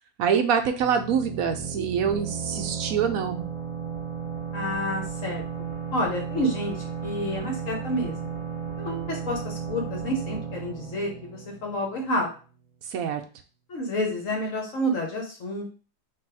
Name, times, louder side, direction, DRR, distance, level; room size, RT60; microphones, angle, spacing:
voice 1, 0.2-3.4 12.8-13.2, right 7 dB, 75° right, 5 dB, 1.0 m, -25 dB
sound 1, 0.8-12.3, right 7 dB, 25° right, 0.9 m, -34 dB
voice 2, 4.5-8.3 8.8-12.3 13.7-15.7, equal, 60° left, 0 dB, 1.2 m, -29 dB
3.4 x 2.7 x 4.6 m, 0.37 s
omnidirectional pair, 1.6 m